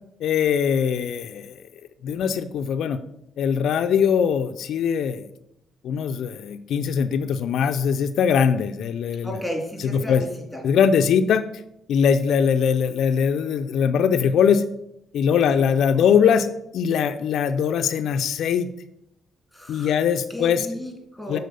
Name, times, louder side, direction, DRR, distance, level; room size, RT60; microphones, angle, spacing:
voice 1, 0.2-1.5 2.0-3.0 3.4-5.3 5.8-9.4 9.8-10.3 10.6-11.5 11.9-14.6 15.1-16.5 16.7-18.7 19.7-20.7 21.3-21.4, left 7 dB, 75° left, 9 dB, 0.4 m, -21 dB
voice 2, 9.2-10.3 16.0-16.1 19.5-19.9 20.3-21.4, equal, ahead, 1 dB, 2.4 m, -33 dB
6.7 x 4.0 x 6.5 m, 0.80 s
cardioid pair, 90°, 0 cm